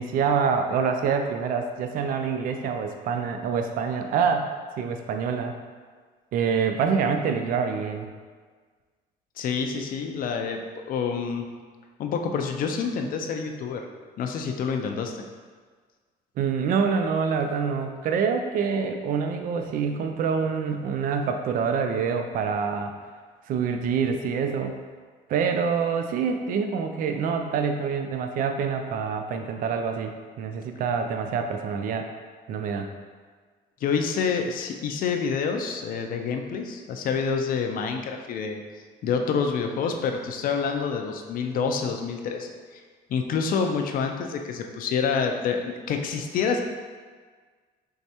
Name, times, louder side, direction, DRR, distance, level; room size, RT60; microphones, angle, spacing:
voice 1, 0.0-5.5 6.3-8.1 16.4-23.0 23.5-24.7 25.3-32.1 32.5-32.9, right 6 dB, 55° right, 5 dB, 0.4 m, -26 dB
voice 2, 9.4-11.5 12.0-13.8 14.2-15.2 33.8-38.6 39.0-42.8 43.1-46.6, left 5 dB, 55° left, 4 dB, 0.5 m, -27 dB
4.6 x 3.2 x 2.8 m, 1.5 s
cardioid pair, 110°, 17 cm